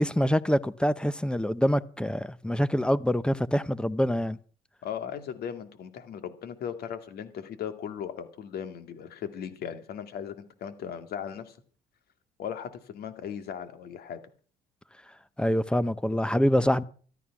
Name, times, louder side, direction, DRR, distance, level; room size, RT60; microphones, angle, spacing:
voice 1, 0.0-4.4 15.4-16.8, equal, 5° left, 0.7 m, -25 dB
voice 2, 4.8-11.6 12.4-14.2, left 8 dB, 65° left, 2.3 m, -37 dB
13.5 x 13.0 x 6.0 m
cardioid pair, 110°, 17 cm